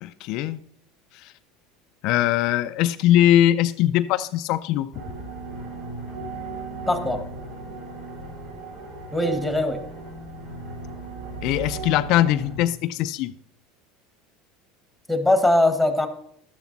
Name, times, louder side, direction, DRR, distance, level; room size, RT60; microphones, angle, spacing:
voice 1, 0.0-0.6 1.2-1.3 2.0-4.9 11.4-13.3, left 13 dB, 60° left, 9 dB, 0.5 m, -21 dB
sound 1, 4.9-12.6, right 3 dB, 70° right, 5.0 m, -36 dB
voice 2, 6.9-7.2 9.1-9.8 15.1-16.1, left 1 dB, ahead, 8 dB, 1.6 m, -21 dB
12.0 x 9.4 x 4.1 m, 0.71 s
supercardioid pair, 125°, 0 cm